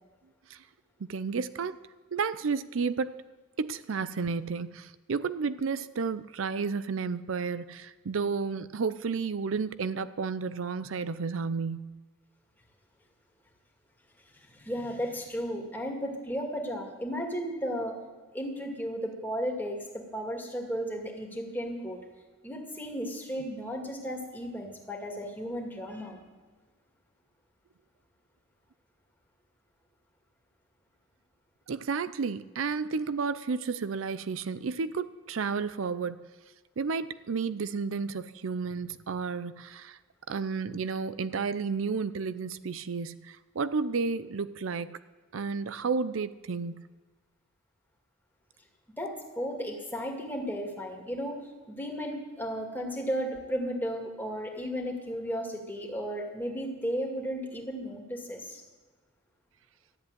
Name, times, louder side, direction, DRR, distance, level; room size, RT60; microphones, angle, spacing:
voice 1, 1.1-1.8 2.1-3.2 3.6-12.0 31.7-36.3 36.8-40.0 40.3-45.0 45.3-46.8, right 5 dB, 85° right, 14 dB, 0.5 m, -32 dB
voice 2, 14.5-18.0 18.3-19.8 20.1-22.0 22.4-26.2 49.0-51.4 51.7-58.6, equal, 10° left, 0 dB, 2.3 m, -34 dB
14.0 x 7.8 x 9.7 m, 1.4 s
head